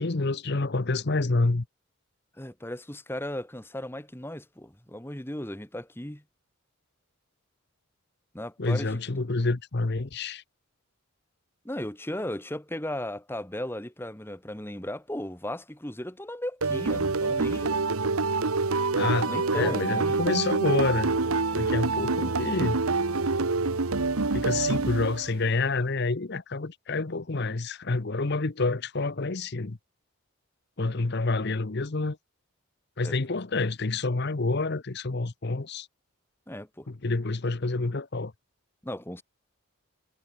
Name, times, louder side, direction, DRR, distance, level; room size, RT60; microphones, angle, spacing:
voice 1, 0.0-1.6 8.6-10.4 19.0-21.1 21.5-22.8 24.3-29.8 30.8-32.2 33.0-35.9 36.9-38.3, left 3 dB, 50° left, 0.9 m, -28 dB
voice 2, 2.4-6.2 8.3-9.0 11.6-17.8 19.2-20.3 33.0-33.1 36.5-36.9 38.8-39.2, left 1 dB, 10° left, 1.6 m, -36 dB
sound 1, 16.6-25.5, right 3 dB, 80° right, 1.2 m, -26 dB
head